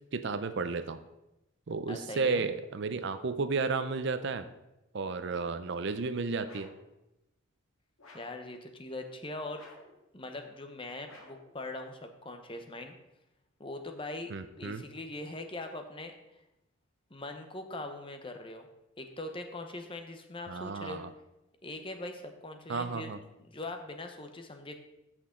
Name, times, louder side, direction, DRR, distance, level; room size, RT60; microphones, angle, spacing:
voice 1, 0.1-1.0 1.7-4.5 4.9-6.7 14.3-14.8 20.5-21.1 22.7-23.2, right 4 dB, 55° right, 11 dB, 0.5 m, -33 dB
voice 2, 1.9-2.5 8.1-9.6 10.1-12.9 13.6-14.3 14.6-16.1 17.1-18.7 19.0-21.0 21.6-23.1 23.4-24.8, left 2 dB, 25° left, 5 dB, 0.8 m, -41 dB
sound 1, 6.4-6.9 8.0-8.5 9.5-10.0 11.0-11.5, left 2 dB, 75° left, 2.0 m, -54 dB
14.0 x 6.1 x 3.8 m, 0.92 s
head